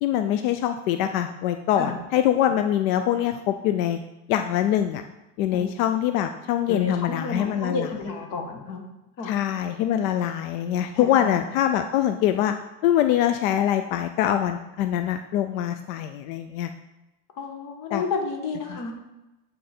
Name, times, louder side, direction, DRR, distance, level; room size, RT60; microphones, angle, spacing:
voice 1, 0.0-4.0 4.3-5.0 5.4-7.9 9.2-12.5 12.8-16.7 17.9-18.0 18.7-18.8, left 11 dB, 90° left, 8 dB, 0.5 m, -24 dB
voice 2, 6.7-8.9 9.2-9.3 10.9-11.3 17.4-18.9, left 4 dB, 55° left, 3 dB, 1.4 m, -31 dB
8.6 x 4.0 x 4.2 m, 1.0 s
cardioid pair, 140°, 39 cm